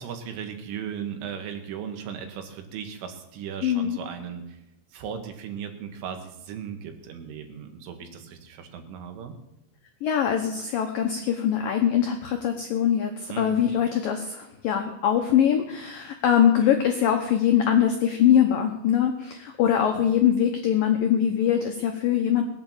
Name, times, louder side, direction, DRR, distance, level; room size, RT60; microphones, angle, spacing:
voice 1, 0.0-4.6 4.9-9.4 13.3-13.6 19.9-20.1, right 8 dB, 80° right, 5 dB, 4.2 m, -37 dB
voice 2, 3.6-4.0 10.0-22.4, left 9 dB, 85° left, 3 dB, 2.0 m, -22 dB
20.5 x 8.7 x 7.4 m, 0.87 s
omnidirectional pair, 5.6 m